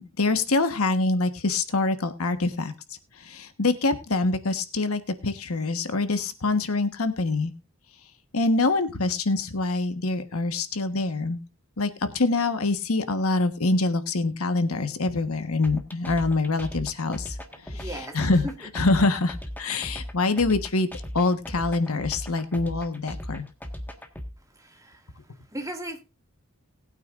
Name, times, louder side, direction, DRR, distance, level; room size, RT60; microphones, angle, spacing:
voice 1, 0.0-2.7 3.2-7.5 8.3-11.4 11.8-17.4 17.7-18.5 18.7-20.9 21.1-23.5, left 3 dB, 80° left, 9 dB, 1.3 m, -25 dB
sound 1, 15.6-24.3, equal, 10° left, 1.5 m, -37 dB
voice 2, 17.7-18.2 18.4-18.7 24.6-25.0 25.5-26.0, right 1 dB, 15° right, 4 dB, 2.1 m, -36 dB
19.5 x 9.0 x 2.5 m, 0.27 s
head